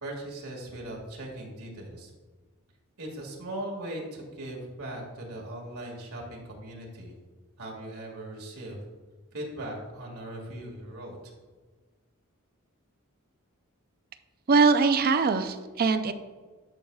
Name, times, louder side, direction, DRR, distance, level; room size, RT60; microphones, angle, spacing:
voice 1, 0.0-2.1 3.0-7.2 7.6-8.8 9.3-11.3, right 1 dB, 80° right, -2 dB, 2.1 m, -39 dB
voice 2, 14.5-16.1, right 4 dB, 45° right, 10 dB, 0.5 m, -22 dB
10.5 x 6.3 x 2.4 m, 1.4 s
head